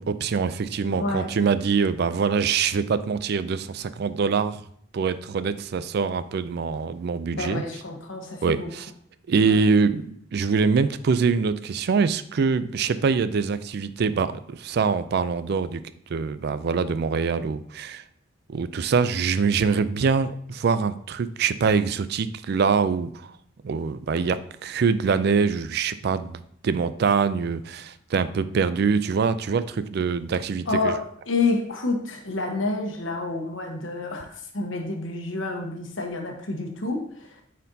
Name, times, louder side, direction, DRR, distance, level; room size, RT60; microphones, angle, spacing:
voice 1, 0.0-4.6 4.9-7.6 8.4-8.9 9.3-15.8 16.1-18.0 18.5-23.3 23.6-30.9, right 5 dB, 55° right, 13 dB, 0.4 m, -24 dB
voice 2, 1.0-1.3 7.3-8.7 9.4-9.6 30.7-37.4, left 3 dB, 80° left, 3 dB, 1.1 m, -29 dB
9.0 x 4.3 x 2.7 m, 0.66 s
head